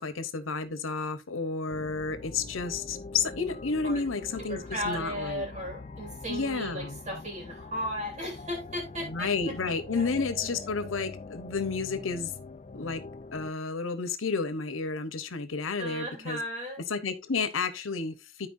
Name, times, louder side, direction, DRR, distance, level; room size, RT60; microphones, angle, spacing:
voice 1, 0.0-5.5 6.3-7.0 9.1-12.3 12.7-13.0 13.3-16.4 16.9-18.5, left 4 dB, 90° left, 1.0 m, -31 dB
sound 1, 1.7-13.5, left 3 dB, 35° left, 0.4 m, -43 dB
voice 2, 4.5-9.3 9.9-10.1 15.8-16.8, equal, 35° right, 3.3 m, -35 dB
13.5 x 4.5 x 2.6 m
head